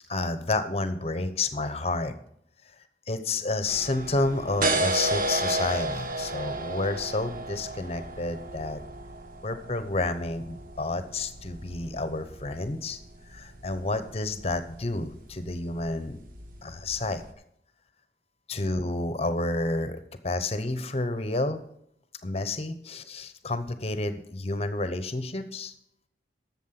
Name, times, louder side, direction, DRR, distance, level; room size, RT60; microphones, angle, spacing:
voice 1, 0.1-2.1 3.1-8.8 9.4-13.0 13.3-16.2 16.6-17.2 18.5-20.0 20.2-21.6 22.2-25.7, left 2 dB, 35° left, 11 dB, 0.9 m, -30 dB
sound 1, 3.7-17.3, right 2 dB, 50° right, 1.0 m, -34 dB
11.5 x 7.3 x 5.9 m, 0.73 s
head